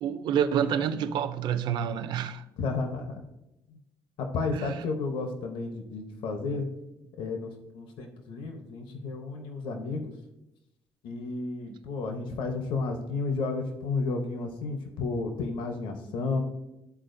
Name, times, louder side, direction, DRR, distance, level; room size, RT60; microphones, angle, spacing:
voice 1, 0.0-2.4 4.5-4.8 11.7-11.8, right 8 dB, 55° right, 0.5 m, -28 dB
voice 2, 2.6-3.2 4.2-6.6 7.2-10.1 11.0-16.4, left 3 dB, 70° left, 0.9 m, -32 dB
12.5 x 4.3 x 2.6 m
cardioid pair, 175°, 9 cm